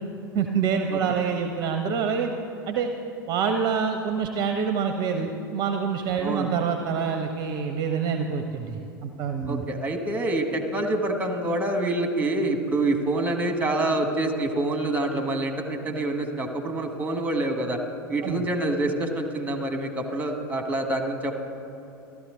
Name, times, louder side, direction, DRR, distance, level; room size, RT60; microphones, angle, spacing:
voice 1, 0.3-2.3 2.7-2.9 3.3-9.6 18.2-18.4, right 6 dB, 35° right, 6 dB, 0.7 m, -26 dB
voice 2, 9.5-17.8 18.1-21.3, right 2 dB, 15° right, 5 dB, 1.4 m, -26 dB
13.5 x 12.5 x 3.8 m, 2.7 s
figure-of-eight pair, 85°, 12 cm